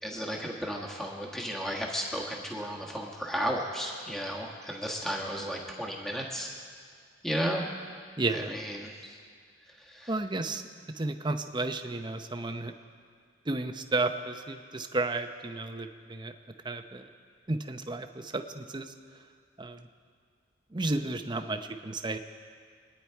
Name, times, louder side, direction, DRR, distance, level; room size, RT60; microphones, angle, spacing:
voice 1, 0.0-6.5 7.2-7.6 8.3-9.2 9.7-10.2, equal, 5° left, -2 dB, 1.4 m, -34 dB
voice 2, 8.2-8.5 10.1-10.6 10.9-12.7 13.5-16.3 16.6-17.1 17.5-18.9 19.6-19.9 20.7-22.2, right 2 dB, 25° right, 7 dB, 0.7 m, -32 dB
26.5 x 10.0 x 4.6 m, 2.1 s
head